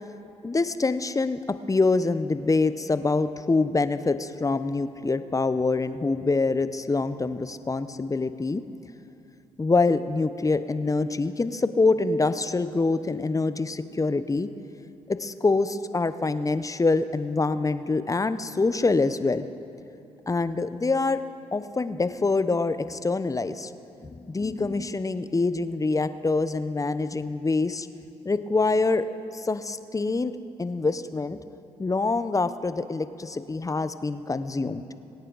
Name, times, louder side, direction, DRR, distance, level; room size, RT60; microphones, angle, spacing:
voice 1, 0.4-8.6 9.6-14.5 15.1-19.5 20.3-21.2 21.5-23.7 24.0-27.9 28.2-29.1 29.3-30.3 30.6-31.4 31.8-34.8, left 3 dB, 25° left, 12 dB, 0.7 m, -25 dB
23.0 x 9.2 x 4.0 m, 2.8 s
hypercardioid pair, 50°, 14 cm